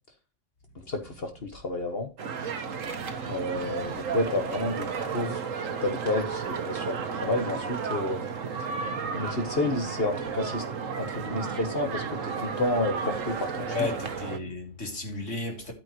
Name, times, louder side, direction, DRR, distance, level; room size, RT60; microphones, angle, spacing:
voice 1, 0.9-2.1 3.3-5.4 5.8-8.2 9.1-10.6 10.9-13.8, left 2 dB, 50° left, 1.7 m, -30 dB
sound 1, 2.2-14.4, right 5 dB, 90° right, 1.5 m, -33 dB
voice 2, 2.9-3.4 13.7-15.7, left 3 dB, 70° left, 3.4 m, -34 dB
11.0 x 9.1 x 3.1 m
omnidirectional pair, 1.3 m